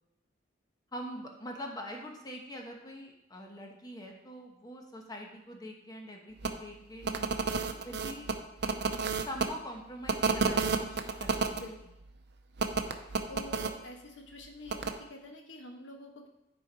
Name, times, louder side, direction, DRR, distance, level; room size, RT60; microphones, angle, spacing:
voice 1, 0.9-7.1 7.4-8.3 9.2-11.6, equal, 20° left, 1 dB, 1.0 m, -44 dB
sound 1, 6.4-6.5 7.0-9.5 10.1-11.6 12.6-13.7 14.7-14.9, right 4 dB, 60° right, 0.6 m, -30 dB
voice 2, 11.6-12.0 13.3-16.3, left 1 dB, 85° left, 3 dB, 1.2 m, -47 dB
10.0 x 4.5 x 4.5 m, 0.88 s
head